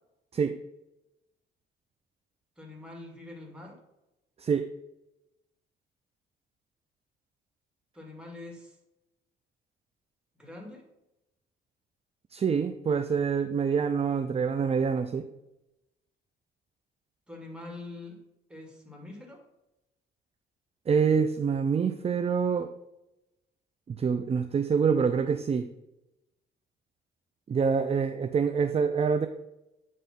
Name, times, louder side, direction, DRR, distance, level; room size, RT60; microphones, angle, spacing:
voice 1, 2.6-3.8 7.9-8.8 10.4-10.8 17.3-18.2 18.5-19.4, left 2 dB, 5° right, 0 dB, 2.3 m, -44 dB
voice 2, 12.3-15.3 20.9-22.7 23.9-25.7 27.5-29.3, right 6 dB, 30° right, 8 dB, 0.5 m, -26 dB
9.2 x 3.2 x 5.6 m, 0.93 s
cardioid pair, 90°, 20 cm